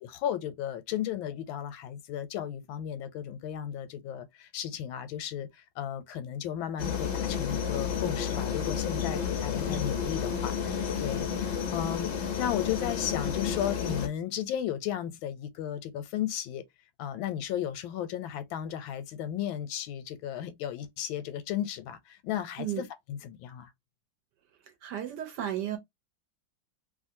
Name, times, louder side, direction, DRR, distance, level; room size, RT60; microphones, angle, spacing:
voice 1, 0.0-5.5 5.8-16.6 17.0-23.7, left 10 dB, 90° left, 1.4 m, -34 dB
sound 1, 6.8-14.1, left 7 dB, 70° left, 0.6 m, -31 dB
voice 2, 24.8-25.8, right 11 dB, 70° right, 1.1 m, -33 dB
3.0 x 2.5 x 2.6 m
omnidirectional pair, 2.1 m